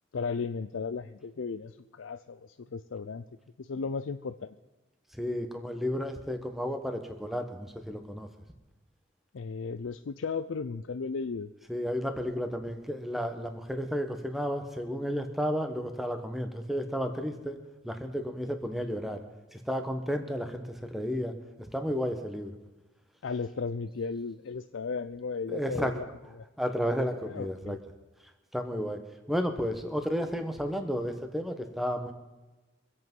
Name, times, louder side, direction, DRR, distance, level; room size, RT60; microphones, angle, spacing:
voice 1, 0.1-3.2 3.6-4.5 9.3-11.5 23.2-26.1 26.4-26.5 27.3-27.8, left 5 dB, 85° left, 9 dB, 0.5 m, -35 dB
voice 2, 5.1-8.3 11.7-17.6 17.8-19.2 19.5-22.6 25.5-25.9 26.6-27.8 28.5-29.0 29.3-32.1, equal, ahead, 6 dB, 1.2 m, -32 dB
24.0 x 8.3 x 5.4 m, 1.1 s
head